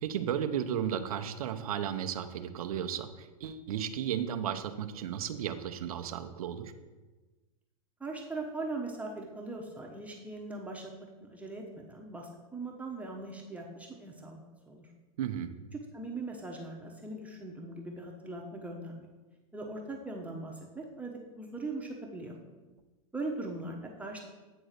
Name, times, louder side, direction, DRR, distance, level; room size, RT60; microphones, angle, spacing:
voice 1, 0.0-6.7 15.2-15.5, right 9 dB, 80° right, 8 dB, 0.7 m, -34 dB
voice 2, 8.0-10.9 11.2-14.4 14.7-14.9 15.7-19.1 19.5-22.4 23.1-24.2, right 2 dB, 10° right, -1 dB, 1.0 m, -40 dB
9.0 x 3.9 x 6.5 m, 1.2 s
hypercardioid pair, 125°, 18 cm